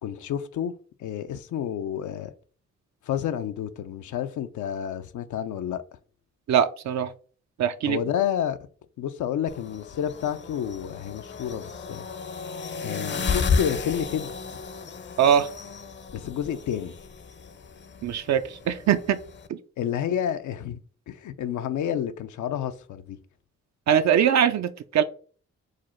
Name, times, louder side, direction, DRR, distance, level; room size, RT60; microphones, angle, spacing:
voice 1, 0.0-0.7 1.0-2.3 3.0-5.8 7.9-8.6 9.0-12.0 12.8-14.6 16.1-16.9 19.8-20.8 21.1-23.2, left 9 dB, 85° left, 0.5 m, -30 dB
voice 2, 6.5-7.1 7.6-8.0 15.2-15.5 18.0-19.2 19.5-19.6 23.9-25.0, right 9 dB, 65° right, 0.5 m, -22 dB
sound 1, 9.5-19.5, left 5 dB, 40° left, 0.5 m, -33 dB
4.9 x 2.0 x 4.3 m
cardioid pair, 65°, 29 cm